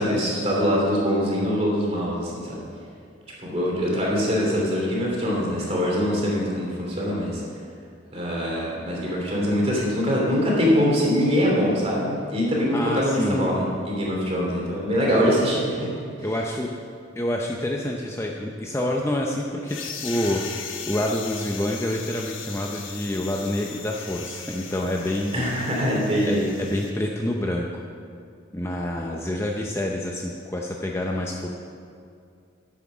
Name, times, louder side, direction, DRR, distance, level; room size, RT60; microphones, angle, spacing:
voice 1, 0.0-2.6 3.4-7.4 8.1-15.9 25.3-26.4, equal, 30° right, -3 dB, 2.9 m, -23 dB
voice 2, 12.7-13.4 15.1-15.5 16.2-16.7 17.2-20.4 20.9-25.5 26.3-27.7 28.5-31.5, left 1 dB, 15° left, 0 dB, 0.6 m, -27 dB
sound 1, 19.7-26.9, left 6 dB, 75° left, 1.2 m, -38 dB
11.0 x 8.3 x 6.2 m, 2.4 s
head